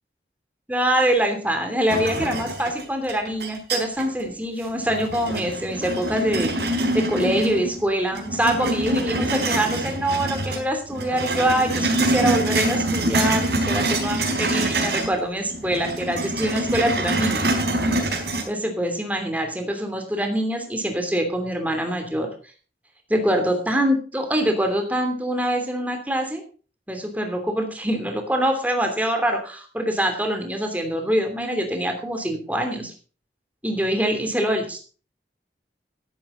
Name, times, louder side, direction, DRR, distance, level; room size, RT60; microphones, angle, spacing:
voice 1, 0.7-17.5 18.5-22.3 23.1-26.4 26.9-32.9 33.6-34.8, right 1 dB, 10° right, 4 dB, 2.9 m, -24 dB
sound 1, 1.9-4.2 4.6-7.8 8.1-10.6 10.9-15.2 15.5-18.4, right 1 dB, 70° right, 4.2 m, -25 dB
13.5 x 11.5 x 3.9 m, 0.38 s
head